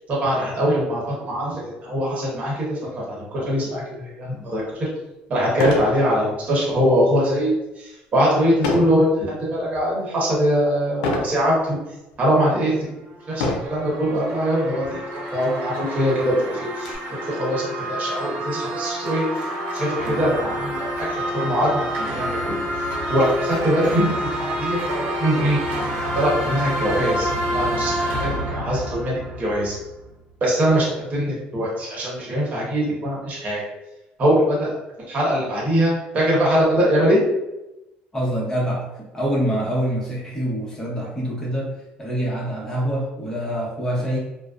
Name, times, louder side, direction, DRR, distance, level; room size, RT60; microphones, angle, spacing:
voice 1, 0.1-4.9 5.3-11.8 12.2-12.9 13.3-16.9 17.3-19.2 19.7-22.6 23.1-25.6 26.1-29.8 30.4-33.6 34.2-34.7 35.1-37.2, equal, 40° right, -5 dB, 1.1 m, -22 dB
sound 1, 4.6-4.7 5.5-6.0 6.4-6.7 8.6-9.0 9.6-10.0 11.0-11.4 12.1-12.2 13.3-13.8 14.8-15.0 15.3-15.4 15.8-16.9, left 3 dB, 90° left, 0.4 m, -25 dB
sound 2, 13.1-30.0, equal, 75° right, 0.7 m, -28 dB
voice 2, 38.1-38.9 39.1-44.2, equal, 15° left, -5 dB, 1.0 m, -25 dB
2.4 x 2.1 x 2.4 m, 0.96 s
supercardioid pair, 90°, 4 cm